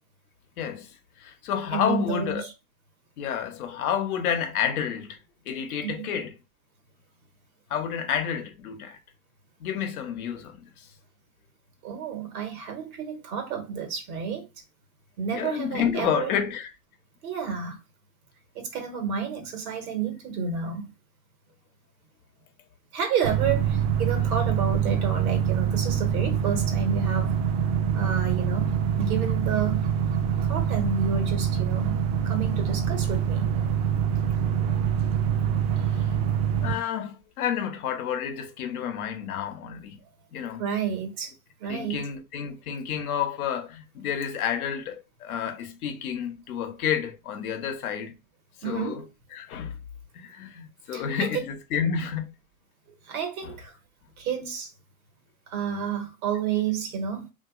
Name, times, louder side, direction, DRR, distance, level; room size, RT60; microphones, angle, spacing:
voice 1, 0.6-0.9 1.2-2.4 3.2-5.2 5.5-6.3 7.7-9.0 9.6-10.6 15.3-16.7 36.6-40.0 40.3-40.6 41.7-48.2 48.6-49.0 49.3-49.8 50.1-52.3 53.4-53.5, left 8 dB, 85° left, 0.7 m, -30 dB
voice 2, 1.7-2.5 5.8-6.1 11.8-14.5 15.2-16.3 17.2-17.8 18.5-20.9 22.9-27.3 27.9-29.9 30.4-33.5 40.6-41.3 41.6-42.1 48.6-49.0 50.9-51.3 53.0-53.8 54.2-54.7 55.5-57.3, right 6 dB, 80° right, 1.2 m, -30 dB
sound 1, 23.2-36.8, right 8 dB, 40° right, 0.4 m, -25 dB
2.8 x 2.5 x 2.3 m
hypercardioid pair, 95°, 43 cm